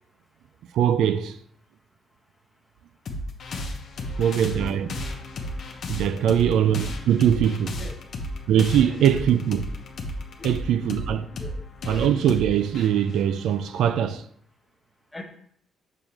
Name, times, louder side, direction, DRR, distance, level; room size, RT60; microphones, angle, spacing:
voice 1, 0.7-1.4 4.2-5.0 5.9-7.8 8.5-9.6 10.4-11.3 11.9-14.3, right 9 dB, 80° right, 0.3 m, -22 dB
sound 1, 3.1-14.1, left 1 dB, 60° left, 1.0 m, -34 dB
voice 2, 6.1-6.9 7.7-8.0 8.8-9.3 10.4-11.7 15.1-15.2, left 1 dB, 15° left, 1.2 m, -40 dB
6.5 x 6.2 x 2.9 m
cardioid pair, 90°, 0 cm